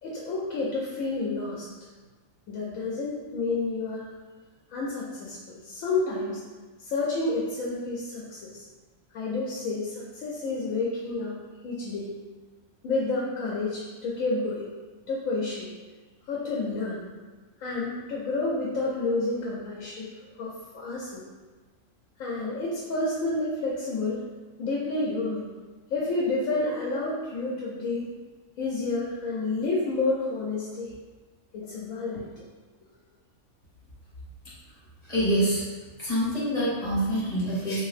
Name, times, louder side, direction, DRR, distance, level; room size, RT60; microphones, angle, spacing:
voice 1, 0.0-1.7 2.5-4.1 4.7-6.4 6.8-8.6 9.1-11.4 11.6-12.1 12.8-14.7 15.1-15.7 16.3-17.0 17.6-20.1 20.4-21.2 22.2-24.3 24.6-25.5 25.9-28.1 28.6-30.9 31.5-32.4, left 3 dB, 90° left, -4 dB, 1.0 m, -30 dB
voice 2, 35.0-35.6 36.0-37.8, right 1 dB, 30° left, -10 dB, 1.3 m, -26 dB
2.9 x 2.7 x 3.2 m, 1.3 s
omnidirectional pair, 1.4 m